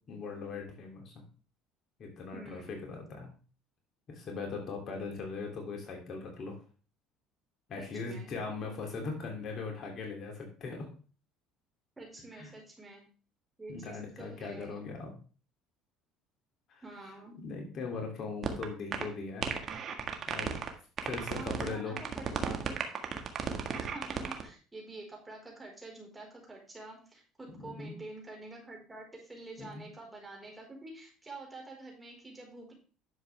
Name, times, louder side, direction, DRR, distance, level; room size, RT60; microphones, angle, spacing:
voice 1, 0.1-1.1 2.0-3.3 4.1-6.6 7.7-10.9 12.3-12.5 13.7-15.1 16.7-16.8 17.4-19.5 20.3-20.5 21.0-21.9 27.6-27.9 29.6-29.8, left 4 dB, 50° left, 1 dB, 2.9 m, -39 dB
voice 2, 2.3-2.8 7.8-8.3 12.0-13.1 13.6-14.9 16.8-17.4 21.3-22.8 23.8-32.7, right 2 dB, 15° right, -1 dB, 4.7 m, -47 dB
sound 1, 18.4-18.6 18.9-19.0 19.4-20.7 21.0-21.7 22.0-24.4, right 7 dB, 45° right, 1.7 m, -33 dB
11.0 x 7.1 x 3.5 m, 0.37 s
supercardioid pair, 90°, 0 cm